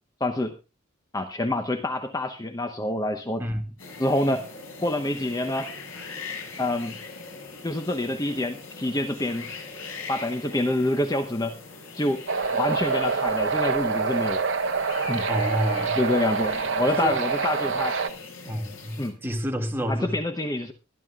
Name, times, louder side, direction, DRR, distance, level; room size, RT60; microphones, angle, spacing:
voice 1, 0.2-0.5 1.1-3.4 4.0-4.5 4.8-5.7 6.6-6.9 7.6-9.5 10.1-11.6 11.9-12.2 12.5-14.5 15.1-15.3 16.0-18.0 19.0-19.2 19.9-20.7, left 1 dB, 20° left, 7 dB, 0.8 m, -27 dB
voice 2, 3.4-3.7 15.3-16.0 16.9-17.2 18.4-20.2, equal, 10° right, 1 dB, 2.1 m, -29 dB
sound 1, 3.8-19.1, left 4 dB, 85° left, 6.9 m, -41 dB
sound 2, 12.3-18.1, right 5 dB, 65° right, 1.1 m, -26 dB
23.5 x 11.0 x 2.4 m, 0.28 s
head